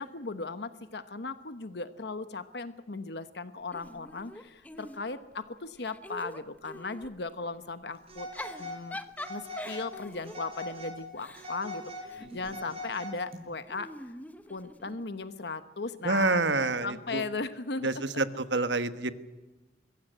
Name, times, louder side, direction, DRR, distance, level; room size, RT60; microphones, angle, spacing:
voice 1, 0.0-8.3 8.6-9.0 9.3-14.2 14.5-18.0, left 3 dB, 65° left, 11 dB, 1.1 m, -37 dB
Giggle / Chuckle chortle, 3.7-5.3 5.8-7.2 8.1-12.6 13.7-15.1, left 1 dB, 10° left, 1.0 m, -44 dB
Telephone, 8.1-8.8 9.2-9.9 10.3-11.0 11.3-13.4, equal, 35° right, 7.0 m, -41 dB
voice 2, 16.0-17.2 17.8-19.1, right 3 dB, 80° right, 11 dB, 1.4 m, -28 dB
23.0 x 16.5 x 9.1 m, 1.1 s
head